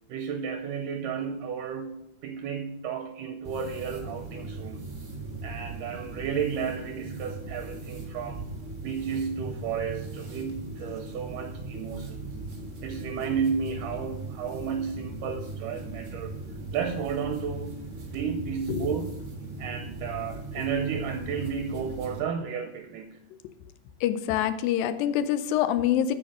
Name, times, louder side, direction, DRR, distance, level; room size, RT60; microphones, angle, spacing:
voice 1, 0.1-5.0 5.4-8.4 8.8-12.4 12.8-16.3 16.7-17.8 18.1-19.2 19.6-23.2, right 7 dB, 80° right, 6 dB, 2.1 m, -33 dB
sound 1, 3.4-22.2, right 2 dB, 40° right, 0.8 m, -39 dB
voice 2, 24.0-26.1, left 10 dB, 80° left, 12 dB, 2.3 m, -25 dB
8.9 x 6.4 x 6.1 m, 0.83 s
omnidirectional pair, 4.2 m